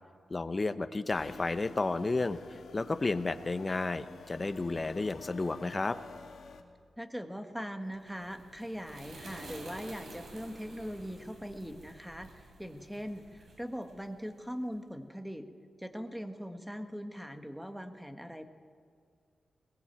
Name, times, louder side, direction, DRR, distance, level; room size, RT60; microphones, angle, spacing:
voice 1, 0.3-2.4 2.7-6.0, left 3 dB, 25° left, 10 dB, 0.9 m, -32 dB
sound 1, 1.1-6.6, left 5 dB, 75° left, 2.3 m, -51 dB
voice 2, 7.0-15.5 15.8-18.5, equal, ahead, 6 dB, 1.5 m, -41 dB
sound 2, 7.9-14.5, right 2 dB, 60° right, 6.1 m, -51 dB
20.5 x 20.0 x 9.0 m, 2.1 s
wide cardioid pair, 145°, 0 cm